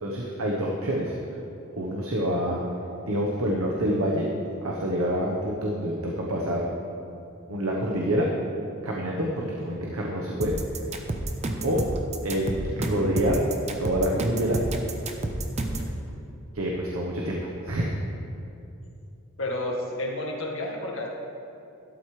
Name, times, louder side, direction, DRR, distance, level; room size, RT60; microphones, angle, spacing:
voice 1, 0.0-1.2 1.7-2.6 3.1-4.3 4.6-6.6 7.5-8.3 8.8-10.5 11.6-11.9 12.2-13.4 13.8-14.6 16.5-18.0, equal, 90° right, -2 dB, 1.1 m, -27 dB
sound 1, 10.4-15.9, right 2 dB, 30° right, 0.7 m, -30 dB
voice 2, 19.4-21.1, left 1 dB, 70° left, -1 dB, 1.7 m, -31 dB
12.0 x 12.0 x 3.3 m, 2.7 s
head